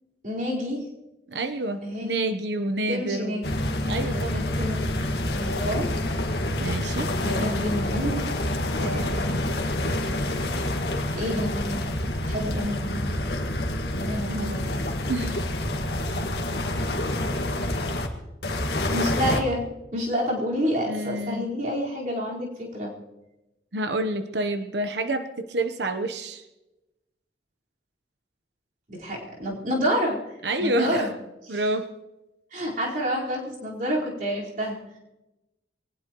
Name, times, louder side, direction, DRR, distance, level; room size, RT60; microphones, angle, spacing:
voice 1, 0.2-0.8 1.8-2.1 2.9-3.5 4.1-5.9 7.0-8.3 8.8-9.4 11.1-11.8 12.3-13.2 13.9-14.8 16.1-17.0 18.9-19.6 19.9-22.9 28.9-30.2 30.6-31.1 31.4-31.6 32.5-35.0, equal, 50° right, -5 dB, 4.5 m, -29 dB
voice 2, 1.3-3.4 3.8-4.5 6.6-7.1 12.6-12.8 14.3-14.6 15.1-15.4 20.9-21.5 23.7-26.4 30.4-31.1 31.5-31.9, right 1 dB, 75° right, 9 dB, 1.0 m, -28 dB
sound 1, 3.4-18.1 18.4-19.4, left 1 dB, 65° left, 1.8 m, -27 dB
23.5 x 19.0 x 3.1 m, 1.0 s
head